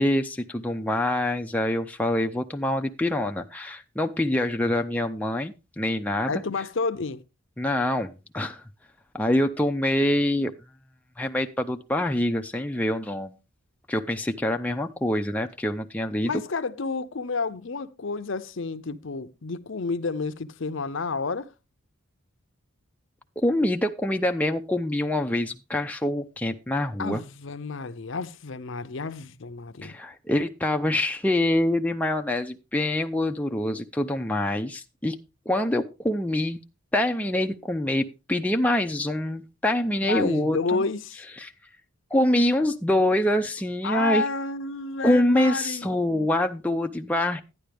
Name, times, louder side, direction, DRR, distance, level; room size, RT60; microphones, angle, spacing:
voice 1, 0.0-6.4 7.6-8.6 9.1-10.5 11.2-13.3 13.9-16.4 23.4-27.2 29.8-35.2 35.5-36.6 36.9-40.8 41.4-41.5 42.1-44.2 45.0-47.4, left 1 dB, 5° left, 0.4 m, -25 dB
voice 2, 6.3-7.2 16.2-21.5 27.0-30.0 40.0-41.2 43.8-46.3, left 4 dB, 55° left, 0.6 m, -30 dB
11.5 x 9.9 x 3.4 m
head